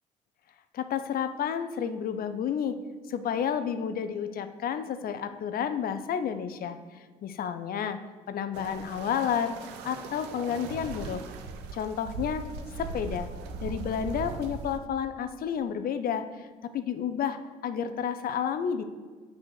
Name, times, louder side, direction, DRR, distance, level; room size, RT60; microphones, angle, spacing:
voice 1, 0.7-2.8 3.1-6.8 7.2-8.0 8.3-9.6 9.8-11.2 11.7-12.4 12.9-13.3 13.6-18.8, left 8 dB, 60° left, 10 dB, 0.6 m, -31 dB
sound 1, 8.5-14.8, right 4 dB, 80° right, 0.7 m, -39 dB
6.2 x 4.2 x 6.3 m, 1.5 s
hypercardioid pair, 55°, 17 cm